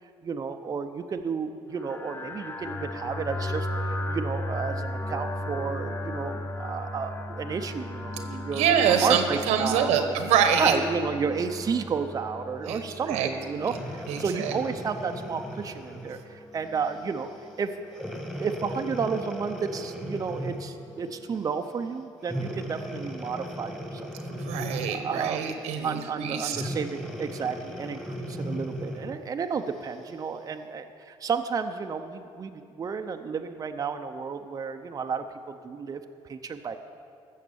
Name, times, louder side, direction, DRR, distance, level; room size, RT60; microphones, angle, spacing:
voice 1, 0.2-8.6 9.0-10.1 10.6-17.3 17.6-17.7 18.4-24.2 24.9-25.4 25.8-36.0 36.3-36.8, right 5 dB, 35° right, 6 dB, 0.6 m, -32 dB
sound 1, 1.8-21.5, left 1 dB, 20° left, 0.7 m, -37 dB
voice 2, 8.5-10.7 12.7-12.8 13.1-13.3 13.5-13.8 14.1-14.5 24.3-26.7, right 8 dB, 90° right, 7 dB, 1.2 m, -25 dB
Breathing, 13.6-16.2 16.9-17.1 17.9-20.8 22.2-25.1 26.5-29.2 29.8-29.9, equal, 5° left, 1.6 m, -37 dB
15.0 x 6.5 x 7.0 m, 2.4 s
cardioid pair, 105°, 11 cm